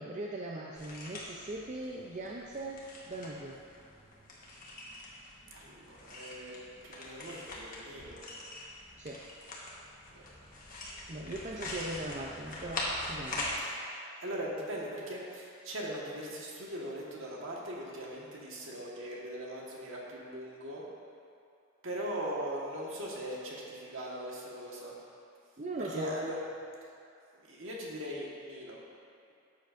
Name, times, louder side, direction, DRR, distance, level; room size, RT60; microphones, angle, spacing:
voice 1, 0.0-3.6 9.0-9.2 11.1-13.5 25.6-26.1, right 2 dB, 35° right, -2 dB, 0.5 m, -40 dB
sound 1, 0.8-13.6, left 1 dB, 40° left, 1.3 m, -43 dB
voice 2, 5.5-6.6 6.8-8.2 10.1-10.2 13.6-20.8 21.8-25.0 25.8-26.4 27.3-28.8, equal, 65° right, -4 dB, 1.5 m, -40 dB
12.0 x 7.8 x 2.6 m, 2.5 s
head